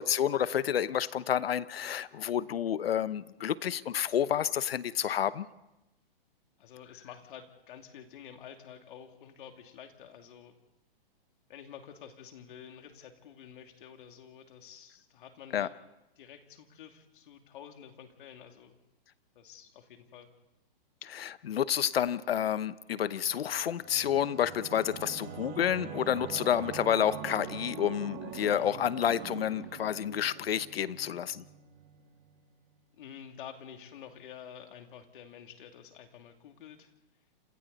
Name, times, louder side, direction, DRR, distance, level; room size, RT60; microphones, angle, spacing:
voice 1, 0.0-5.5 15.5-15.7 21.0-31.4, left 9 dB, 80° left, 16 dB, 1.0 m, -29 dB
voice 2, 6.6-10.5 11.5-15.7 16.2-18.8 19.3-20.3 28.5-29.0 29.4-29.6 33.0-36.9, left 8 dB, 60° left, 5 dB, 2.8 m, -49 dB
Singing / Musical instrument, 23.3-32.5, right 9 dB, 30° right, 1.6 m, -44 dB
28.0 x 27.5 x 4.1 m, 0.91 s
hypercardioid pair, 150°, 29 cm